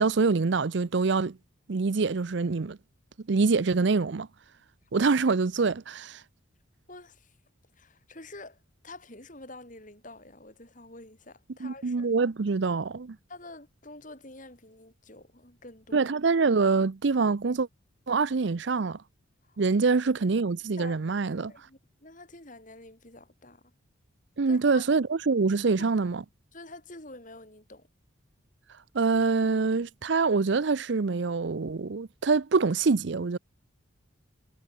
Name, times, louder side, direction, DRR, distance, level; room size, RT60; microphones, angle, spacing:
voice 1, 0.0-1.4 1.7-2.8 3.3-4.3 4.9-6.2 11.6-13.2 15.9-17.7 18.1-19.0 19.6-21.5 24.4-26.2 28.9-33.4, right 4 dB, 60° right, 0.6 m, -25 dB
voice 2, 6.9-7.4 7.7-12.1 13.3-16.1 19.4-19.6 20.8-21.0 21.5-23.6 24.5-24.9 25.8-25.9 26.5-27.9, left 2 dB, 40° left, 6.3 m, -48 dB
head